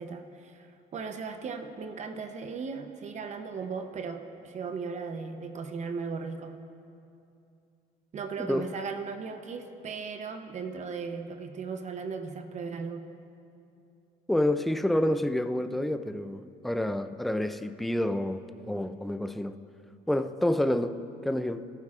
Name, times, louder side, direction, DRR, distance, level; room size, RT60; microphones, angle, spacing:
voice 1, 0.0-6.6 8.1-13.1, right 5 dB, 45° right, 0.8 m, -37 dB
voice 2, 14.3-19.6 20.1-21.7, left 1 dB, ahead, 0.4 m, -28 dB
19.0 x 13.5 x 2.5 m
cardioid pair, 110°, 17 cm